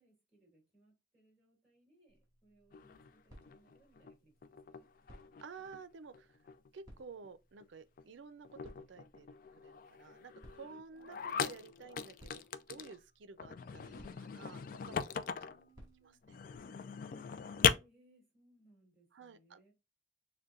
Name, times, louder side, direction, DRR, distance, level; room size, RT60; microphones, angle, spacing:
voice 1, 0.0-4.9 10.9-11.5 15.3-16.2 17.4-19.7, right 1 dB, ahead, 2.5 m, -69 dB
sound 1, 2.1-16.6, equal, 20° right, 2.4 m, -63 dB
sound 2, 2.7-4.2 4.4-5.8 6.1-6.7 7.0-7.3 7.6-7.7 8.0-8.1 8.4-13.0 13.4-15.6 16.2-17.7, left 7 dB, 45° left, 0.3 m, -39 dB
voice 2, 5.4-6.4 6.7-12.4 12.7-15.1 16.0-16.4 19.1-19.7, right 5 dB, 75° right, 0.5 m, -52 dB
6.5 x 2.2 x 2.4 m
head